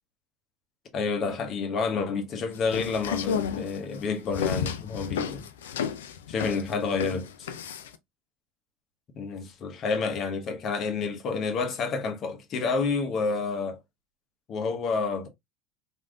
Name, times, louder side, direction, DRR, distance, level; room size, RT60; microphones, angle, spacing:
voice 1, 0.9-5.5 6.3-7.5 9.2-13.8 14.5-15.3, left 4 dB, 45° left, 1.0 m, -29 dB
sound 1, 2.5-8.0, left 7 dB, 80° left, 0.4 m, -32 dB
3.2 x 2.6 x 2.3 m
hypercardioid pair, 80°, 0 cm